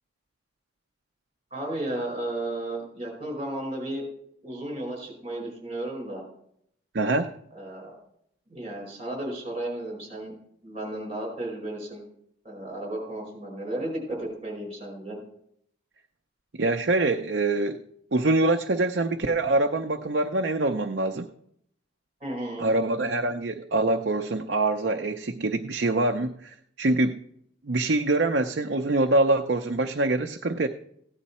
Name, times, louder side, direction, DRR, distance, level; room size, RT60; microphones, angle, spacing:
voice 1, 1.5-4.0 4.4-6.2 7.5-8.0 8.5-10.3 10.6-12.0 12.4-15.2 22.2-22.7, right 1 dB, 30° right, 0 dB, 4.9 m, -34 dB
voice 2, 6.9-7.3 16.5-17.8 18.1-21.3 22.6-27.2 27.7-30.7, right 2 dB, 55° right, 6 dB, 0.6 m, -24 dB
15.5 x 9.9 x 4.2 m, 0.72 s
head